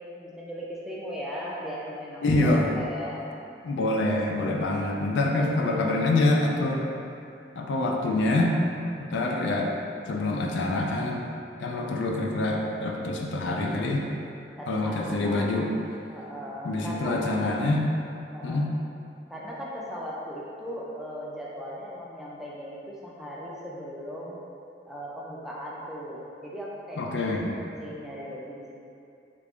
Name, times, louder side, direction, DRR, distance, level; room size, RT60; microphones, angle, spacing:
voice 1, 0.1-3.3 14.6-15.6 16.1-17.2 18.3-18.6 19.3-24.4 24.9-27.5 27.8-28.7, equal, ahead, -6 dB, 0.3 m, -38 dB
voice 2, 2.2-2.6 3.6-6.8 7.6-8.6 9.0-9.8 10.1-11.2 11.6-14.1 14.7-15.7 16.6-17.9 18.4-18.7 27.0-27.5, left 2 dB, 85° left, 0 dB, 0.4 m, -25 dB
3.3 x 2.4 x 3.5 m, 2.6 s
head